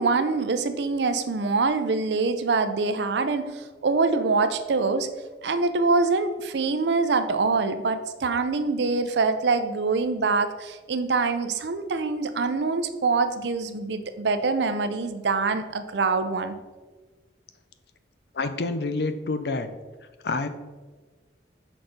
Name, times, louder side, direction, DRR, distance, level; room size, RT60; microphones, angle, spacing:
voice 1, 0.0-5.1 5.4-16.5, right 4 dB, 75° right, 10 dB, 0.5 m, -24 dB
voice 2, 18.3-19.7 20.2-20.5, left 3 dB, 65° left, 9 dB, 0.5 m, -27 dB
6.1 x 4.2 x 5.1 m, 1.3 s
head